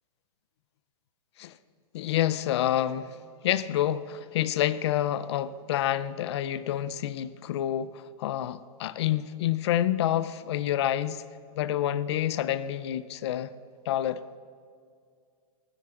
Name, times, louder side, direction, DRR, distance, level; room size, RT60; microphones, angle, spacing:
voice 1, 1.9-3.2 3.4-11.2 11.5-13.5 13.9-14.2, left 12 dB, 50° left, 14 dB, 0.6 m, -28 dB
26.5 x 10.0 x 3.8 m, 2.2 s
hypercardioid pair, 160°, 18 cm